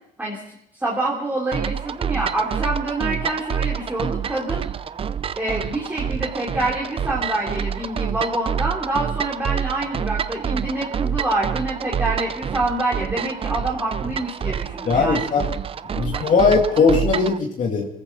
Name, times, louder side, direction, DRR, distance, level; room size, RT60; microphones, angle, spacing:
voice 1, 0.2-4.7 5.4-15.3 15.9-16.2, right 2 dB, 10° right, -3 dB, 3.0 m, -26 dB
sound 1, 1.5-17.4, right 8 dB, 35° right, 0.6 m, -27 dB
voice 2, 14.9-15.5 16.0-17.9, left 4 dB, 50° left, 0 dB, 2.3 m, -19 dB
23.5 x 14.5 x 4.1 m, 0.78 s
cardioid pair, 110°, 17 cm